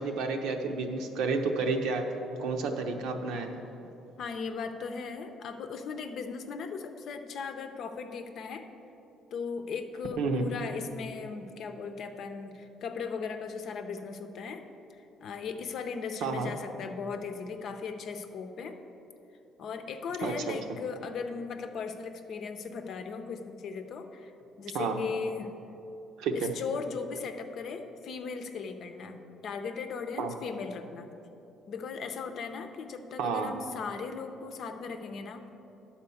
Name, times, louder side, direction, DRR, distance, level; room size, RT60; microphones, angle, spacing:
voice 1, 0.0-2.0 2.4-3.5 10.2-10.5 16.2-16.5 20.2-20.6 24.7-25.0 26.2-26.5 30.2-30.3 33.2-33.5, right 4 dB, 80° right, 4 dB, 0.8 m, -30 dB
voice 2, 4.2-8.7 9.3-14.6 14.9-18.8 19.6-24.3 24.6-25.5 26.3-31.1 31.7-35.4, left 5 dB, 55° left, 7 dB, 0.6 m, -38 dB
10.5 x 4.3 x 7.0 m, 2.9 s
cardioid pair, 135°, 0 cm